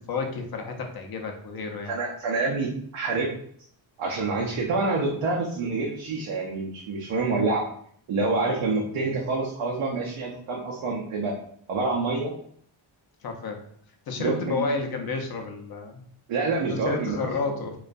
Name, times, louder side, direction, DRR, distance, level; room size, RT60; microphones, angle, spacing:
voice 1, 0.1-1.9 13.2-13.6 14.1-16.0 16.7-17.8, left 4 dB, 50° left, 4 dB, 0.5 m, -31 dB
voice 2, 1.9-3.3 4.0-7.6 8.1-11.3 11.7-12.3 14.2-14.6 16.3-17.2, right 3 dB, 85° right, -3 dB, 0.6 m, -27 dB
2.3 x 2.2 x 2.5 m, 0.62 s
cardioid pair, 85°, 48 cm